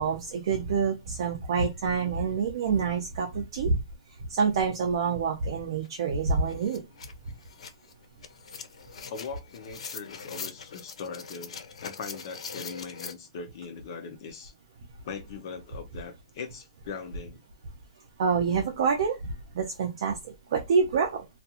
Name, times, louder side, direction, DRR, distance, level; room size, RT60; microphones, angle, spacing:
voice 1, 0.0-3.8 4.1-6.9 18.2-21.3, right 5 dB, 50° right, 0.5 m, -27 dB
sound 1, 5.8-5.9 6.2-13.1, left 5 dB, 85° left, 0.6 m, -42 dB
voice 2, 9.1-14.5 15.0-17.4, left 5 dB, 40° left, 0.5 m, -40 dB
2.4 x 2.3 x 2.8 m
hypercardioid pair, 165°, 3 cm